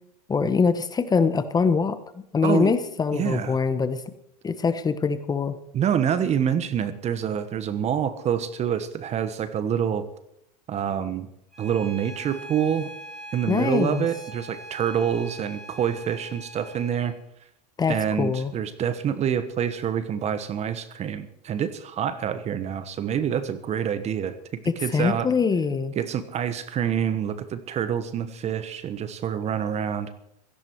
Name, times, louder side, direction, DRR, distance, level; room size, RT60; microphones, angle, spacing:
voice 1, 0.3-2.0 2.3-4.0 4.4-5.6 13.5-14.1 17.8-18.5 24.6-26.0, left 5 dB, 20° left, 12 dB, 1.1 m, -23 dB
voice 2, 3.1-3.6 5.7-10.0 10.7-11.3 11.6-12.9 13.3-17.1 17.9-24.4 24.8-25.3 26.0-30.1, right 8 dB, 30° right, 13 dB, 1.3 m, -26 dB
Bowed string instrument, 11.5-17.1, right 1 dB, ahead, 6.8 m, -42 dB
17.0 x 14.5 x 4.6 m, 0.77 s
hypercardioid pair, 110°, 21 cm